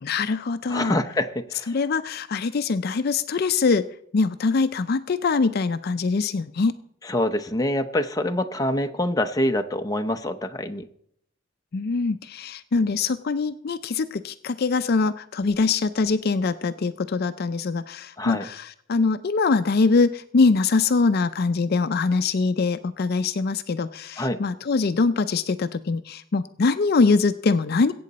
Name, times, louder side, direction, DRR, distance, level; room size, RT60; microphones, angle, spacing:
voice 1, 0.0-1.0 1.7-3.9 4.1-6.7 11.7-27.9, left 4 dB, 55° left, 12 dB, 0.4 m, -23 dB
voice 2, 0.7-1.7 7.0-10.8 18.2-18.5 24.2-24.4, left 1 dB, 20° left, 7 dB, 0.7 m, -25 dB
22.0 x 8.5 x 4.1 m, 0.69 s
head